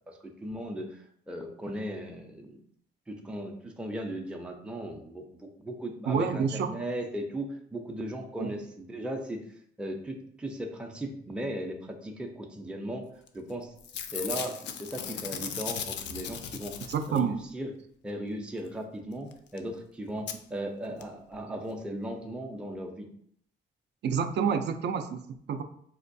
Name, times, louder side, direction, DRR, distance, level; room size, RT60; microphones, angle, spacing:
voice 1, 0.1-2.6 3.1-9.4 9.8-13.0 13.3-13.7 14.1-16.8 17.1-17.7 18.0-23.1, right 1 dB, 5° right, 2 dB, 0.5 m, -37 dB
voice 2, 6.1-6.7 8.4-8.5 16.9-17.4 24.0-25.6, right 6 dB, 60° right, 7 dB, 0.4 m, -28 dB
Packing tape duct tape / Tearing, 13.3-13.5 13.8-17.4 19.3-19.4 19.6-19.7 20.3-20.4 21.0-21.1 21.3-21.4, left 8 dB, 65° left, 0.4 m, -37 dB
4.2 x 2.3 x 2.6 m, 0.67 s
cardioid pair, 90°, 20 cm